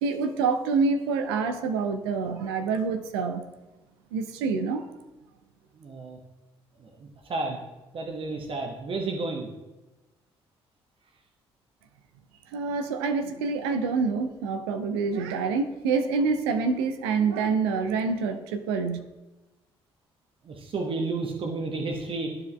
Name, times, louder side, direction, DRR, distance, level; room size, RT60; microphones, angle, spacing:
voice 1, 0.0-3.4 4.1-4.8 12.5-19.0, right 4 dB, 70° right, 8 dB, 0.5 m, -26 dB
voice 2, 5.8-6.2 6.8-7.6 7.9-9.5 20.4-22.3, right 3 dB, 40° right, 2 dB, 0.9 m, -32 dB
12.0 x 4.8 x 2.2 m, 1.1 s
figure-of-eight pair, 45°, 14 cm